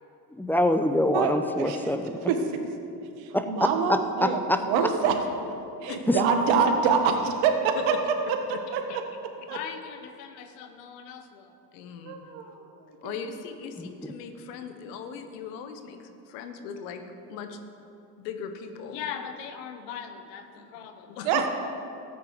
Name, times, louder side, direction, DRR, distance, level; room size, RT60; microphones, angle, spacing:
voice 1, 0.3-2.2 3.3-3.4 3.9-4.6 6.1-6.2 13.8-13.9, left 1 dB, 5° left, 8 dB, 0.7 m, -25 dB
voice 2, 1.1-1.9 2.3-2.4 3.2-5.2 5.8-8.0 8.3-9.0 9.5-9.6 12.0-12.6 13.0-13.1 21.2-21.5, right 6 dB, 65° right, 5 dB, 1.6 m, -26 dB
voice 3, 5.9-6.2 7.7-7.8 8.9-9.0 9.5-11.4 11.7-12.2 13.0-16.0 16.3-17.0 17.3-17.6 18.2-21.5, left 7 dB, 75° left, 7 dB, 1.2 m, -38 dB
14.0 x 8.7 x 4.8 m, 2.7 s
hypercardioid pair, 70°, 49 cm